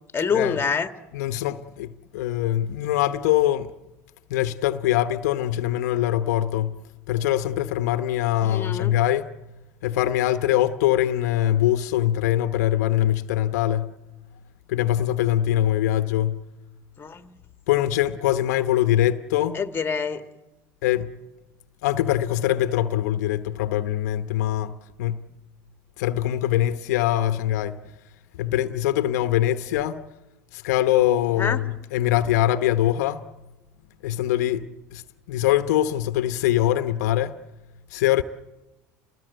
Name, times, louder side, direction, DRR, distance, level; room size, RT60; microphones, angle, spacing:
voice 1, 0.1-0.9 8.4-8.9 17.0-17.4 19.5-20.2 31.4-31.6, left 6 dB, 25° left, 1.5 m, -26 dB
voice 2, 1.1-3.7 4.3-6.8 7.1-9.3 9.8-13.9 14.7-16.4 17.7-19.6 20.8-21.1 21.8-25.2 26.0-27.8 28.4-30.0 30.5-33.2 34.0-34.7 34.9-35.0 35.3-37.4 37.9-38.2, left 13 dB, 75° left, 0.9 m, -23 dB
28.5 x 20.5 x 8.0 m
hypercardioid pair, 80°, 9 cm